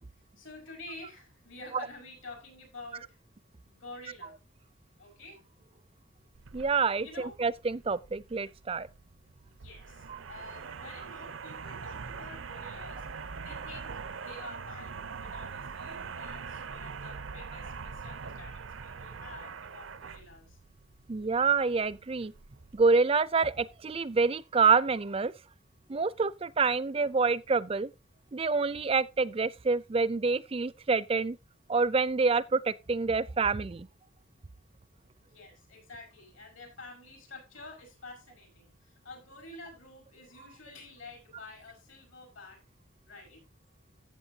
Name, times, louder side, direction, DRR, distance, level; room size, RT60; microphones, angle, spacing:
voice 1, 0.4-3.2 3.6-4.4 5.0-5.4 7.0-7.4 9.4-13.1 13.4-20.6 35.3-42.6 43.0-43.4, left 2 dB, 75° left, 6.0 m, -49 dB
sound 1, 6.3-22.9, right 5 dB, 75° right, 0.6 m, -43 dB
voice 2, 6.5-8.9 10.1-10.2 21.1-22.3 22.7-25.3 25.9-27.9 28.3-31.4 31.7-33.9, right 4 dB, 30° right, 0.4 m, -27 dB
14.5 x 7.8 x 2.8 m
head